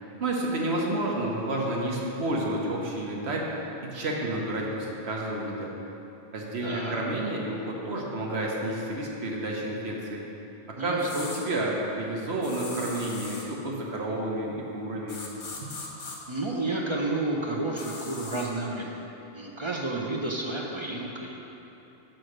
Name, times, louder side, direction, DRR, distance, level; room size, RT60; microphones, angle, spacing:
voice 1, 0.2-5.7 6.3-10.2 10.7-15.2, right 1 dB, 60° right, -2 dB, 1.1 m, -30 dB
voice 2, 6.6-6.9 10.8-11.1 16.3-19.0 19.3-21.3, right 2 dB, 40° right, -2 dB, 0.4 m, -31 dB
sound 1, 11.0-11.4 12.4-13.5 15.1-16.2 17.8-18.5, left 3 dB, 70° left, 1.3 m, -39 dB
6.3 x 4.5 x 6.4 m, 3.0 s
omnidirectional pair, 1.3 m